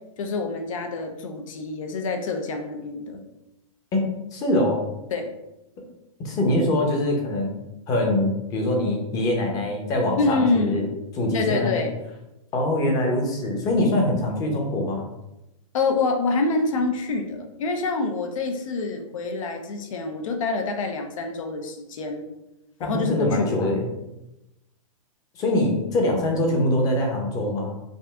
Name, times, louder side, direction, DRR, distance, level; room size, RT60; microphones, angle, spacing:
voice 1, 0.2-3.2 5.1-5.3 10.2-10.8 11.3-11.9 15.7-22.2 22.8-23.8, left 3 dB, 70° left, 5 dB, 0.8 m, -26 dB
voice 2, 3.9-4.8 6.2-7.5 7.9-10.9 11.1-11.8 12.5-15.1 22.8-23.9 25.3-27.7, left 1 dB, 20° left, 1 dB, 0.8 m, -23 dB
5.2 x 2.6 x 3.5 m, 0.92 s
hypercardioid pair, 160°, 18 cm